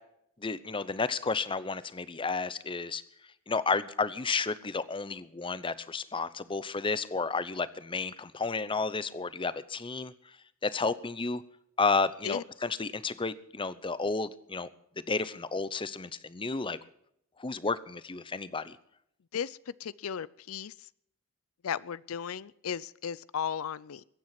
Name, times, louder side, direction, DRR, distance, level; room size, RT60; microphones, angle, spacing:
voice 1, 0.4-3.0 3.5-10.1 10.6-11.4 11.8-14.7 15.1-16.8 17.4-18.8, left 4 dB, 25° left, 16 dB, 0.7 m, -32 dB
voice 2, 19.3-20.9 21.6-24.0, left 7 dB, 80° left, 20 dB, 0.5 m, -36 dB
22.0 x 9.3 x 6.0 m, 0.73 s
head